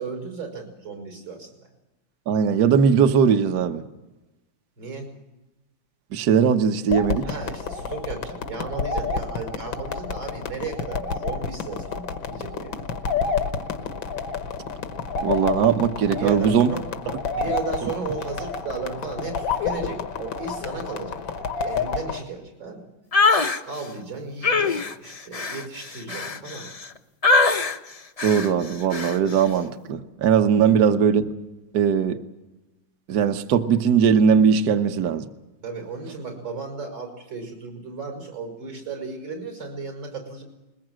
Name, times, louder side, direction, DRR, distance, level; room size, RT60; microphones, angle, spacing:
voice 1, 0.0-1.5 4.8-5.1 7.2-12.8 16.1-16.8 17.3-22.8 23.7-26.7 30.7-30.9 35.6-40.4, right 4 dB, 80° right, 4 dB, 6.3 m, -35 dB
voice 2, 2.3-3.8 6.1-7.3 15.2-16.7 17.8-17.9 28.2-31.3 31.7-32.2 33.1-35.2, right 7 dB, 60° right, 8 dB, 1.4 m, -19 dB
sound 1, 6.9-22.2, left 5 dB, 90° left, 1.9 m, -29 dB
sound 2, 23.1-23.6 24.4-26.9 27.2-27.8 28.2-28.5 28.9-29.2, left 3 dB, 65° left, 0.3 m, -22 dB
21.5 x 20.0 x 7.6 m, 1.0 s
omnidirectional pair, 2.0 m